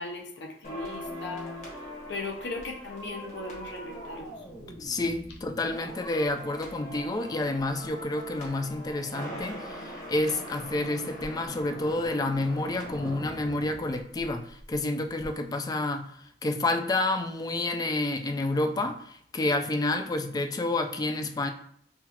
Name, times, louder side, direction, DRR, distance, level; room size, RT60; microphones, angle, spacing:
voice 1, 0.0-1.5 2.1-4.3, left 3 dB, 70° left, 1 dB, 0.6 m, -37 dB
sound 1, 0.6-14.8 15.0-15.3, equal, 45° left, 1.3 m, -42 dB
voice 2, 4.8-21.5, left 2 dB, 20° left, 7 dB, 0.3 m, -29 dB
5.5 x 2.3 x 2.9 m, 0.64 s
head